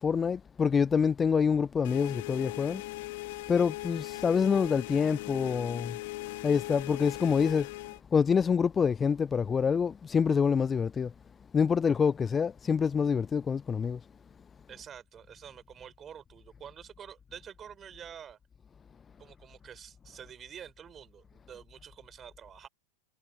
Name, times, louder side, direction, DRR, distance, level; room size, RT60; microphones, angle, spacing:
voice 1, 0.0-2.8 3.5-6.0 6.4-7.7 8.1-11.1 11.5-14.0, left 6 dB, 20° left, 0.5 m, -26 dB
sound 1, 1.8-8.0, left 20 dB, 60° left, 2.7 m, -39 dB
voice 2, 14.7-18.4 19.2-22.7, right 8 dB, 30° right, 4.6 m, -48 dB
hypercardioid pair, 90°, 0 cm